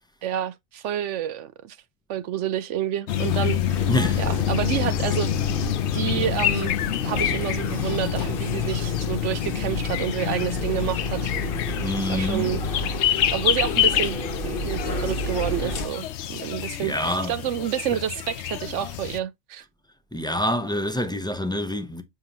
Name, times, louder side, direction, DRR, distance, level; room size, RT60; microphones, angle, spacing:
voice 1, 0.2-1.8 2.1-3.9 4.2-5.3 5.9-6.8 7.0-11.3 12.1-12.6 13.3-19.6, right 10 dB, 70° right, 0.8 m, -29 dB
sound 1, 3.1-19.2, left 11 dB, 65° left, 0.8 m, -27 dB
sound 2, 3.7-15.9, equal, 45° left, 1.4 m, -32 dB
voice 2, 3.9-4.2 11.8-12.5 16.8-17.3 20.1-22.0, left 1 dB, 5° left, 0.5 m, -26 dB
7.2 x 5.6 x 2.8 m
omnidirectional pair, 1.4 m